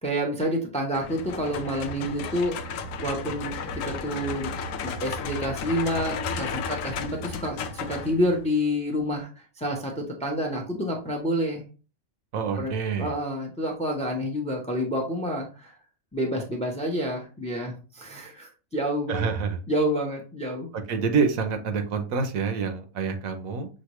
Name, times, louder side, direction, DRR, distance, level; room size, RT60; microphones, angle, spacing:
voice 1, 0.0-3.6 3.8-4.5 4.8-9.3 9.6-11.6 12.6-12.7 13.0-15.7 16.1-19.3 19.7-20.7, equal, 5° left, 2 dB, 0.7 m, -28 dB
sound 1, 0.9-8.5, left 5 dB, 75° left, 0.9 m, -33 dB
voice 2, 12.3-13.1 19.1-19.6 20.7-23.7, right 5 dB, 75° right, 7 dB, 1.1 m, -27 dB
6.3 x 2.6 x 3.0 m, 0.35 s
omnidirectional pair, 1.5 m